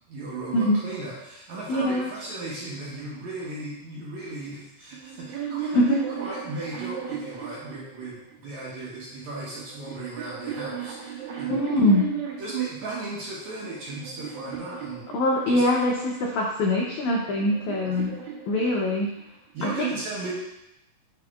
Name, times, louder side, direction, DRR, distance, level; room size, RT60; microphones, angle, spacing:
voice 1, 0.1-5.8 6.1-11.6 12.4-15.1 15.5-15.6 17.8-17.9 19.5-20.4, right 3 dB, 65° right, -6 dB, 2.1 m, -36 dB
voice 2, 1.7-2.1 5.7-6.0 11.5-12.1 15.1-18.1 18.5-19.1 19.6-19.7, left 1 dB, 85° left, -1 dB, 1.6 m, -23 dB
sound 1, 5.0-8.4 9.3-12.7 13.3-15.8 16.8-19.2, right 7 dB, 85° right, 2.8 m, -36 dB
7.0 x 6.8 x 2.4 m, 0.88 s
omnidirectional pair, 4.3 m